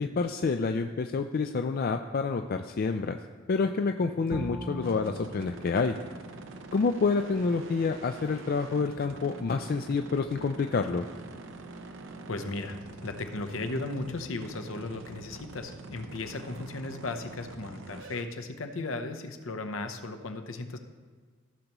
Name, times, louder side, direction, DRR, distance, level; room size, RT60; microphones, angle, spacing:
voice 1, 0.0-3.2 3.5-5.9 6.7-11.0, left 4 dB, 45° left, 6 dB, 0.4 m, -28 dB
Bowed string instrument, 4.3-7.4, equal, ahead, 1.0 m, -42 dB
sound 1, 4.8-18.2, right 3 dB, 65° right, 0.7 m, -45 dB
voice 2, 12.3-12.8 13.0-20.8, left 2 dB, 70° left, 7 dB, 0.8 m, -36 dB
15.5 x 6.7 x 3.0 m, 1.5 s
head